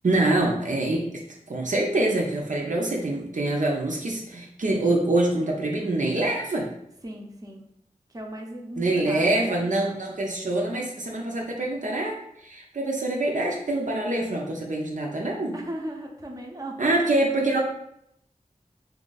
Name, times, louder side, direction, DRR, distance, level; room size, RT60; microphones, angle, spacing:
voice 1, 0.0-1.0 1.5-6.7 8.8-15.5 16.8-17.6, right 2 dB, 65° right, -1 dB, 0.5 m, -25 dB
voice 2, 7.0-7.7 8.1-9.6 15.5-16.9, right 1 dB, 25° right, 0 dB, 0.7 m, -37 dB
2.7 x 2.5 x 3.9 m, 0.75 s
wide cardioid pair, 40°, 14 cm